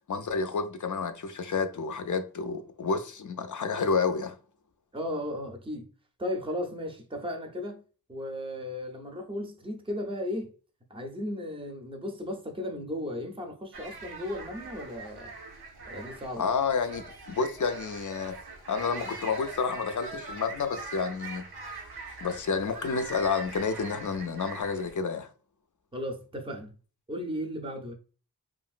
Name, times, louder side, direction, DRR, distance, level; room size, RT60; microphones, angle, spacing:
voice 1, 0.1-4.3 16.4-18.4 18.7-21.4 22.2-25.3, left 5 dB, 55° left, 0.4 m, -30 dB
voice 2, 4.9-5.8 6.2-7.8 8.1-10.5 10.9-15.4 15.9-16.5 25.9-26.7 27.1-27.9, left 1 dB, 15° right, 0.5 m, -35 dB
sound 1, 13.7-25.0, right 3 dB, 80° right, 0.6 m, -43 dB
2.9 x 2.5 x 2.4 m
wide cardioid pair, 45°, 38 cm